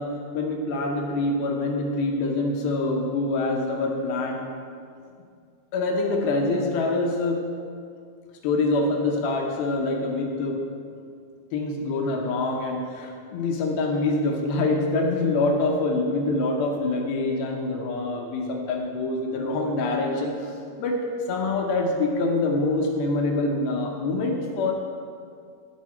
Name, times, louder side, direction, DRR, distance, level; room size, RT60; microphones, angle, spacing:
voice 1, 0.0-4.4 5.7-7.5 8.4-10.7 11.5-20.3 20.8-21.0 21.3-24.7, left 2 dB, 75° left, 1 dB, 2.5 m, -25 dB
15.0 x 5.5 x 4.3 m, 2.3 s
omnidirectional pair, 4.8 m